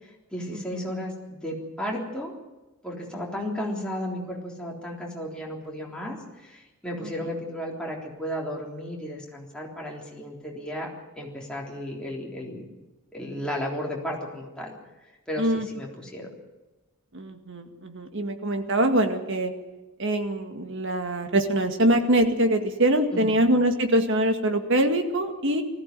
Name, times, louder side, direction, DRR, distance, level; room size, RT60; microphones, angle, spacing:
voice 1, 0.0-2.3 2.8-12.7 13.1-14.7 15.3-16.3 23.1-23.4, equal, 5° left, -2 dB, 3.6 m, -34 dB
voice 2, 17.1-19.5 20.0-25.6, right 1 dB, 60° right, 6 dB, 2.0 m, -23 dB
20.0 x 15.0 x 9.2 m, 1.1 s
head